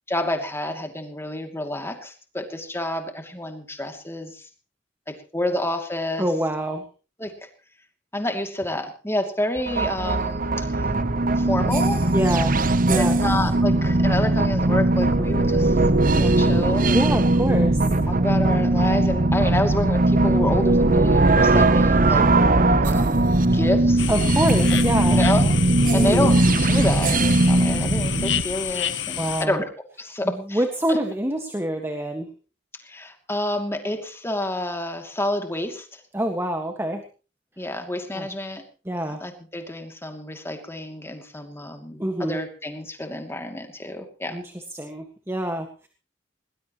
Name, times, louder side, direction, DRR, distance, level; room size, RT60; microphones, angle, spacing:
voice 1, 0.1-4.5 5.1-6.3 7.2-7.4 8.1-10.9 11.4-12.1 12.9-15.8 16.1-17.2 18.1-22.3 22.8-23.2 23.5-24.1 25.1-25.5 25.9-29.7 30.0-30.6 30.9-31.0 32.8-36.0 37.6-38.6 39.2-44.4, left 1 dB, 15° left, 5 dB, 2.6 m, -29 dB
voice 2, 6.2-6.8 12.1-12.6 12.8-13.2 16.8-18.1 24.1-25.2 25.9-26.3 29.2-29.6 30.2-32.3 36.1-37.0 38.1-38.3 38.8-39.2 42.0-42.4 44.3-45.9, right 1 dB, 15° right, 5 dB, 1.6 m, -26 dB
sound 1, 9.6-28.4, right 2 dB, 50° right, 0.9 m, -19 dB
sound 2, 24.0-29.4, left 9 dB, 80° left, 1.3 m, -29 dB
20.5 x 19.5 x 3.1 m, 0.35 s
head